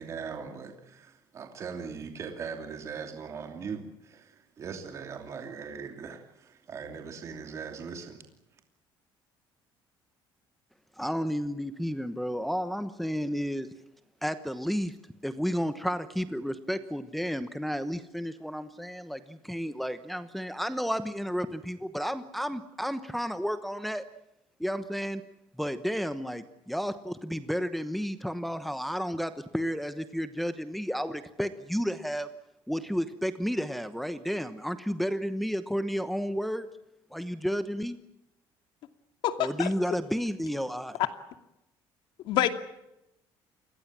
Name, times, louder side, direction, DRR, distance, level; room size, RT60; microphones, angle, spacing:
voice 1, 0.0-8.2, right 6 dB, 35° right, 4 dB, 2.8 m, -40 dB
voice 2, 11.0-13.7 14.2-14.9 15.2-24.0 24.6-25.2 25.6-32.3 32.7-36.7 37.1-38.0 39.4-41.0, equal, ahead, 10 dB, 1.0 m, -32 dB
voice 3, 39.2-40.0 40.9-41.1 42.2-42.5, left 13 dB, 70° left, 8 dB, 2.6 m, -27 dB
28.5 x 22.0 x 7.5 m, 0.87 s
cardioid pair, 160°, 9 cm